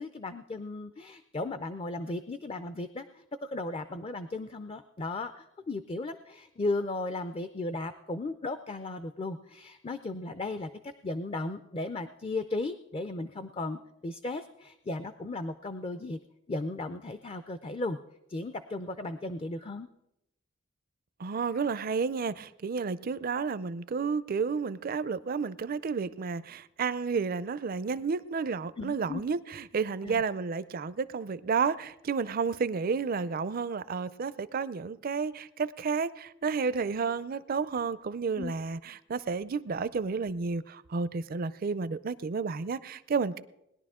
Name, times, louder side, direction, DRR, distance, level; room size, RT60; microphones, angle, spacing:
voice 1, 0.0-16.2 16.5-18.0 18.3-19.9 28.8-29.2 30.0-30.2 38.4-38.5, left 2 dB, 30° left, 0.4 m, -36 dB
voice 2, 21.2-43.4, right 5 dB, 45° right, 0.4 m, -31 dB
20.0 x 11.0 x 3.6 m
head